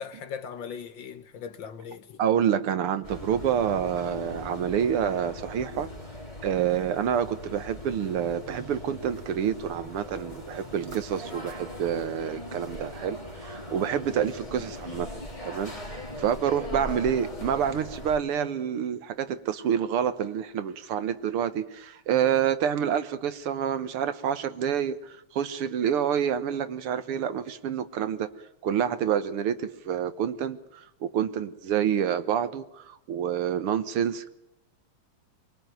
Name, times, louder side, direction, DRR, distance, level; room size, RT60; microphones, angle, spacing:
voice 1, 0.0-2.2, left 7 dB, 60° left, 1.8 m, -39 dB
voice 2, 2.2-5.9 6.4-15.7 16.2-28.3 28.6-34.3, right 8 dB, 80° right, 2.1 m, -28 dB
sound 1, 3.0-18.2, left 1 dB, 15° left, 3.2 m, -40 dB
24.5 x 22.0 x 9.2 m
omnidirectional pair, 2.4 m